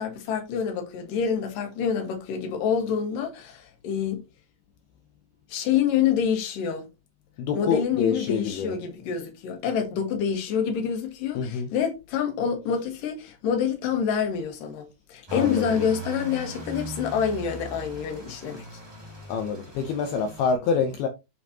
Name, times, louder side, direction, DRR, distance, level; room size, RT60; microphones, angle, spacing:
voice 1, 0.0-4.2 5.5-6.9 7.5-18.7, left 7 dB, 60° left, 2.7 m, -27 dB
voice 2, 7.4-8.8 11.4-11.7 15.3-15.7 19.3-21.1, left 6 dB, 80° left, 2.3 m, -26 dB
sound 1, 15.3-20.5, right 2 dB, 30° right, 0.4 m, -39 dB
9.6 x 5.3 x 2.9 m
omnidirectional pair, 5.4 m